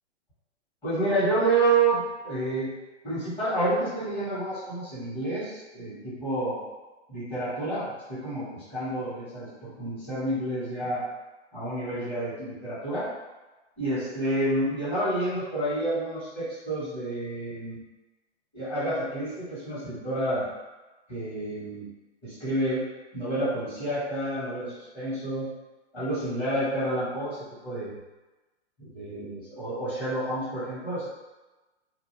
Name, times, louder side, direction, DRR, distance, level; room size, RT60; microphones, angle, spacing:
voice 1, 0.8-2.7 3.0-6.6 7.1-11.0 11.5-13.1 13.8-17.8 18.5-20.5 21.1-21.9 22.2-22.8 23.1-25.5 25.9-27.4 27.6-28.0 28.8-31.1, right 2 dB, 15° left, -12 dB, 1.0 m, -29 dB
2.5 x 2.3 x 3.1 m, 1.1 s
hypercardioid pair, 155°, 35 cm